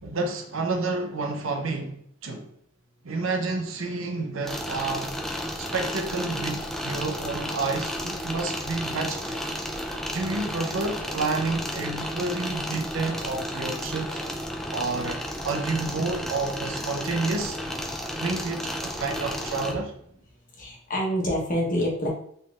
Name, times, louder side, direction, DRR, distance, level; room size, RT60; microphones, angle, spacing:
voice 1, 0.0-2.0 2.2-2.5 3.0-5.1 5.6-9.4 10.1-14.2 14.7-17.6 18.2-19.9, right 3 dB, 65° right, 0.7 m, -29 dB
sound 1, 4.4-19.7, equal, ahead, 0.3 m, -33 dB
voice 2, 20.6-22.1, equal, 40° left, 1.1 m, -26 dB
4.0 x 3.9 x 2.4 m
head